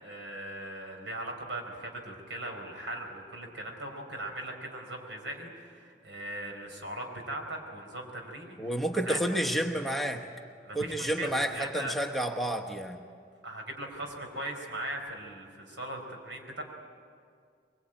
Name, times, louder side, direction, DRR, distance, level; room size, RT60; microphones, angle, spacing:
voice 1, 0.0-8.7 9.0-9.4 10.6-12.0 13.4-16.6, right 1 dB, 80° right, 2 dB, 4.6 m, -39 dB
voice 2, 8.6-10.3 10.7-13.0, right 1 dB, ahead, 2 dB, 1.1 m, -30 dB
23.5 x 22.5 x 9.0 m, 2.2 s
head